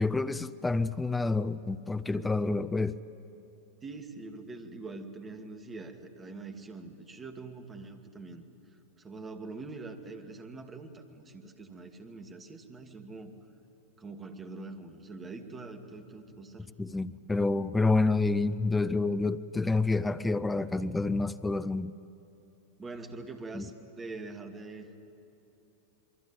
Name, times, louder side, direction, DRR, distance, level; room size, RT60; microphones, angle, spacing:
voice 1, 0.0-3.0 16.8-21.9 23.5-23.6, left 3 dB, 10° left, 0.6 m, -28 dB
voice 2, 3.8-8.4 9.0-13.3 14.0-16.7 22.8-25.0, right 3 dB, 20° right, 2.3 m, -44 dB
27.5 x 23.0 x 9.2 m
figure-of-eight pair, 90°, 0 cm